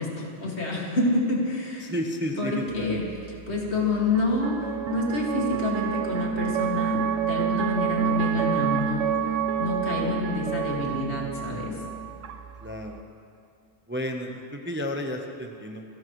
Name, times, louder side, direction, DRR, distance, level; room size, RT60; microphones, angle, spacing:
voice 1, 0.0-1.9 2.4-9.2 9.6-11.8, left 2 dB, 60° left, -3 dB, 2.4 m, -28 dB
voice 2, 1.8-2.9 12.6-13.1 13.9-15.8, equal, 10° right, 2 dB, 0.8 m, -32 dB
sound 1, 2.7-13.0, right 7 dB, 80° right, 1.0 m, -29 dB
29.0 x 11.5 x 3.1 m, 2.4 s
omnidirectional pair, 1.2 m